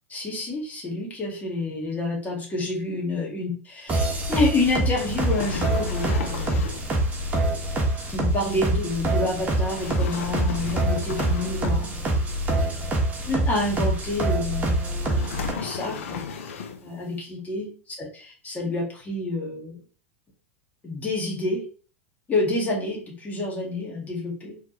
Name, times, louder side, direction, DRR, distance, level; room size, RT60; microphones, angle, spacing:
voice 1, 0.1-6.6 8.1-12.0 12.5-12.8 13.3-14.8 15.4-16.2 16.8-17.7 18.0-19.8 20.8-21.6 22.3-24.6, left 2 dB, 20° left, -2 dB, 1.7 m, -28 dB
sound 1, 3.9-15.5, right 1 dB, 20° right, 1.6 m, -25 dB
sound 2, 4.7-7.0 9.5-12.2 15.0-16.9, left 6 dB, 70° left, 0.7 m, -36 dB
4.3 x 3.5 x 3.1 m, 0.39 s
hypercardioid pair, 100°, 7 cm